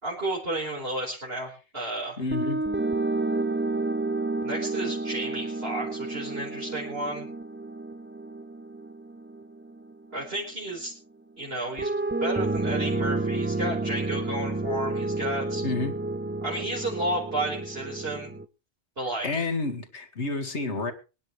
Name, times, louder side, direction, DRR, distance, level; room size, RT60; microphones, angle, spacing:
voice 1, 0.0-2.2 4.4-7.2 10.1-10.9 11.4-11.9 12.2-15.6 16.4-18.3 19.0-19.5, right 1 dB, 60° right, -4 dB, 5.0 m, -32 dB
voice 2, 2.2-2.7 15.6-16.0 19.2-20.9, left 3 dB, 80° left, 6 dB, 2.4 m, -29 dB
sound 1, 2.3-10.4 11.8-18.4, right 2 dB, 15° right, 0.5 m, -30 dB
25.0 x 10.5 x 3.3 m, 0.33 s
omnidirectional pair, 1.1 m